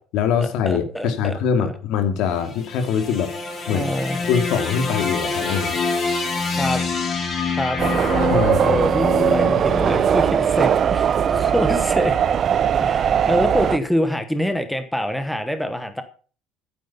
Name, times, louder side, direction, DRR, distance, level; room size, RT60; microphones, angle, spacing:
voice 1, 0.1-3.3 3.7-3.9 4.1-5.8 8.3-8.8, left 7 dB, 65° left, 8 dB, 2.5 m, -23 dB
voice 2, 0.6-1.7 3.7-4.2 6.6-6.8 7.5-7.8 8.6-12.2 12.8-16.0, equal, ahead, 8 dB, 1.1 m, -25 dB
sound 1, 2.3-10.6, left 4 dB, 25° left, 3.7 m, -26 dB
sound 2, 7.8-13.8, right 8 dB, 30° right, 0.7 m, -19 dB
14.5 x 9.5 x 5.6 m, 0.41 s
cardioid pair, 165°, 0 cm